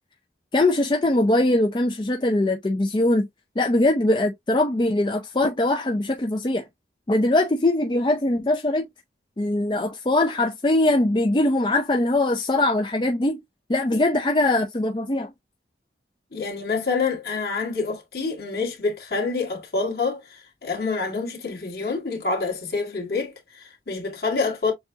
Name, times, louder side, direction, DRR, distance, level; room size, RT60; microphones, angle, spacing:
voice 1, 0.5-3.3 3.6-6.7 7.1-8.9 9.4-13.4 13.7-15.3, left 2 dB, 25° left, 0.5 m, -21 dB
voice 2, 16.3-24.7, left 4 dB, 60° left, 2.0 m, -27 dB
7.0 x 2.3 x 2.7 m
head